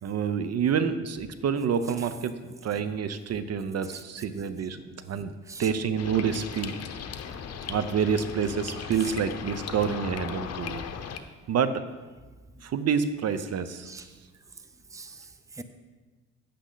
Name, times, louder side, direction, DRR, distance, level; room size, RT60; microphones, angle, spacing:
voice 1, 0.0-4.8 5.1-5.3 5.6-6.8 7.7-10.8 11.5-11.8 12.6-13.9, right 7 dB, 55° right, 0.7 m, -28 dB
sound 1, 6.0-11.2, left 6 dB, 55° left, 0.8 m, -37 dB
voice 2, 14.6-15.6, right 4 dB, 10° right, 0.6 m, -43 dB
10.0 x 8.3 x 3.9 m
cardioid pair, 90°, 30 cm